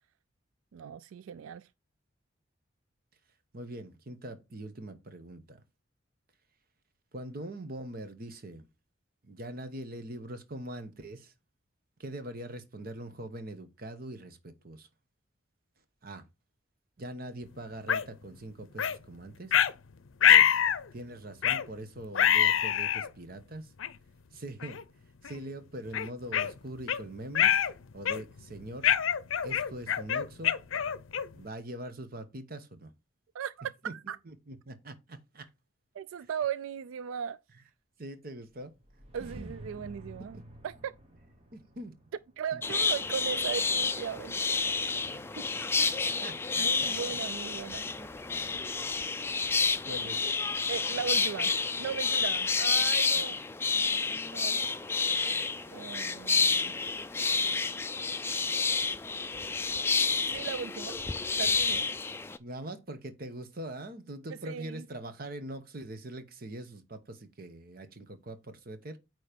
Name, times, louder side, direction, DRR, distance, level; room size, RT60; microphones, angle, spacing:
voice 1, 0.7-1.7 33.3-34.2 35.9-37.4 39.1-40.4 40.6-40.9 42.4-44.4 46.6-47.9 50.7-51.5 51.8-53.4 54.3-54.6 55.7-56.7 60.3-61.0 61.3-61.8 64.4-64.9, right 7 dB, 90° right, 0.3 m, -37 dB
voice 2, 3.5-5.6 7.1-8.7 9.2-11.3 12.0-14.9 16.0-16.2 17.0-19.6 20.2-20.5 20.9-23.7 24.3-24.8 25.2-27.6 27.9-28.9 29.4-30.6 31.3-32.9 33.9-35.5 38.0-38.7 39.4-39.5 40.3-40.4 41.5-41.9 42.5-42.6 45.0-45.5 45.8-45.9 46.2-47.2 48.0-48.1 49.9-50.2 53.1-53.3 53.7-54.5 62.4-69.0, right 1 dB, 50° right, 1.1 m, -43 dB
sound 1, 17.9-18.0 18.8-19.0 19.5-19.7 20.2-20.8 21.4-21.7 22.1-23.1 23.8-23.9 24.6-24.8 25.2-25.4 25.9-27.0 27.3-27.7 28.0-28.4 28.8-31.4, left 9 dB, 85° left, 0.5 m, -25 dB
sound 2, 38.5-43.6, right 1 dB, 30° right, 1.2 m, -51 dB
sound 3, 42.6-62.4, left 4 dB, 10° left, 0.4 m, -30 dB
9.1 x 3.2 x 5.1 m
head